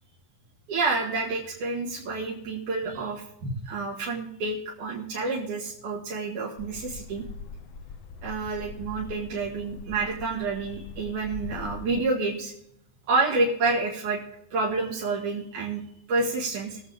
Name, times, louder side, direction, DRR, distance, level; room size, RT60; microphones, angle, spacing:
voice 1, 0.7-7.2 8.2-12.5 13.1-14.2 14.5-16.8, right 3 dB, 85° right, -4 dB, 3.5 m, -29 dB
sound 1, 6.6-12.1, left 5 dB, 90° left, 1.0 m, -42 dB
22.0 x 7.9 x 3.4 m, 0.72 s
omnidirectional pair, 3.4 m